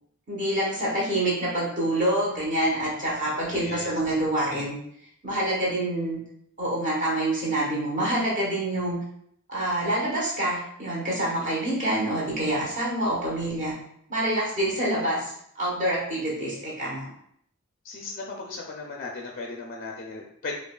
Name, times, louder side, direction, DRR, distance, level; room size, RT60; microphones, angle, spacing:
voice 1, 0.3-4.8 5.2-6.2 6.6-9.0 9.5-13.7 14.1-17.0, right 1 dB, 35° right, -5 dB, 1.1 m, -26 dB
voice 2, 3.5-4.0 11.4-11.5 17.8-20.6, left 3 dB, 40° left, 0 dB, 0.4 m, -37 dB
4.7 x 2.3 x 2.2 m, 0.69 s
head